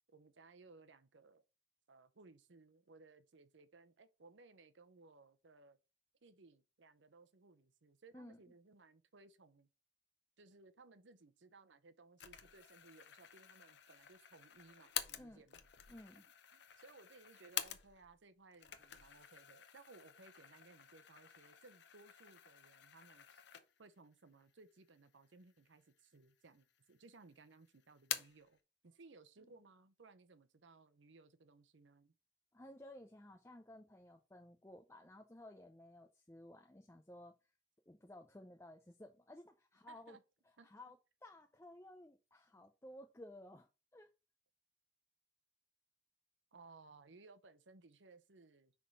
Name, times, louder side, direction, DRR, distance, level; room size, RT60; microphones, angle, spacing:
voice 1, 0.1-1.4 1.9-5.8 6.2-9.7 10.4-15.6 16.5-23.4 23.8-32.1 39.9-40.2 40.6-40.7 46.5-48.7, right 3 dB, 80° right, 0.8 m, -62 dB
sound 1, 12.2-18.2 18.5-24.0 24.4-24.5 25.3-26.0 26.3-27.1 27.4-28.5, left 11 dB, 65° left, 0.6 m, -48 dB
voice 2, 15.9-16.2 32.5-37.3 37.9-40.2 40.6-41.0 41.2-44.1, left 1 dB, 15° left, 0.5 m, -56 dB
6.3 x 3.7 x 5.3 m
head